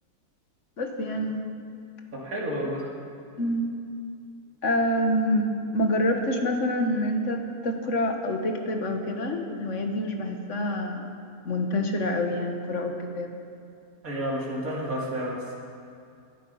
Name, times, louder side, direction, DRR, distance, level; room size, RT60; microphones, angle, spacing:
voice 1, 0.8-1.3 3.4-3.8 4.6-11.1 11.4-13.4, left 1 dB, 55° left, 4 dB, 1.6 m, -27 dB
voice 2, 2.2-2.8 14.0-15.5, equal, 60° right, -5 dB, 3.2 m, -30 dB
19.5 x 10.5 x 5.6 m, 2.5 s
omnidirectional pair, 1.6 m